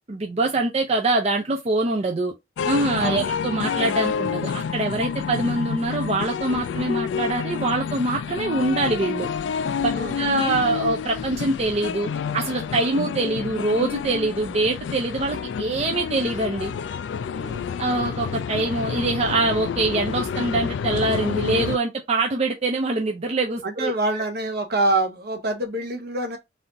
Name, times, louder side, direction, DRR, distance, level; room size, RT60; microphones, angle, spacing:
voice 1, 0.1-2.3 2.6-9.3 10.2-12.1 12.3-16.7 17.8-24.2, right 2 dB, 35° right, 0.5 m, -24 dB
sound 1, 2.6-21.8, left 6 dB, 70° left, 0.3 m, -29 dB
voice 2, 17.3-17.7 23.6-26.4, right 2 dB, 60° right, 1.0 m, -26 dB
4.1 x 2.6 x 3.8 m
head